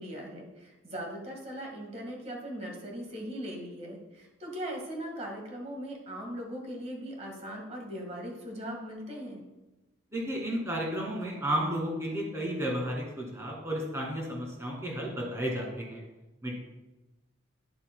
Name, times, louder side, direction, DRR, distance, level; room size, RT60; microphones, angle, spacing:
voice 1, 0.0-9.4, equal, 35° right, 1 dB, 1.7 m, -39 dB
voice 2, 10.1-16.0 16.4-16.6, equal, 15° right, -2 dB, 1.9 m, -32 dB
10.5 x 7.1 x 2.2 m, 1.1 s
head